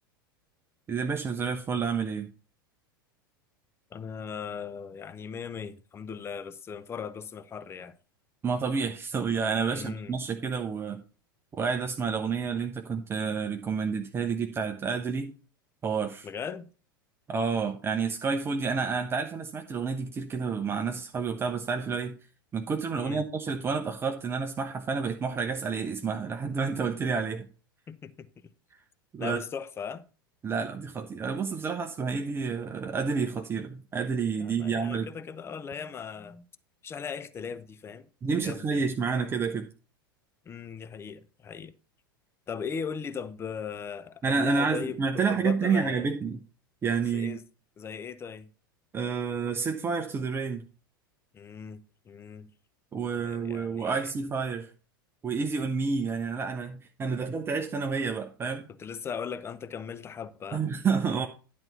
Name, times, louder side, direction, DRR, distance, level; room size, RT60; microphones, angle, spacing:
voice 1, 0.9-2.3 8.4-11.0 11.5-15.3 15.8-16.3 17.3-22.2 22.5-27.5 29.1-29.4 30.4-35.1 38.2-39.7 44.2-46.4 46.8-47.4 48.9-50.6 52.9-54.7 55.2-58.7 60.5-61.3, right 5 dB, 20° right, 0.8 m, -29 dB
voice 2, 3.9-8.0 9.7-10.2 16.2-16.7 23.0-23.2 27.9-28.3 29.2-30.0 34.4-36.5 36.8-38.1 38.4-38.9 40.4-41.7 42.5-46.1 47.1-47.4 47.8-48.5 51.3-52.5 53.1-54.1 58.8-60.7, left 6 dB, 20° left, 0.7 m, -38 dB
11.0 x 4.1 x 5.9 m
figure-of-eight pair, 85°, 12 cm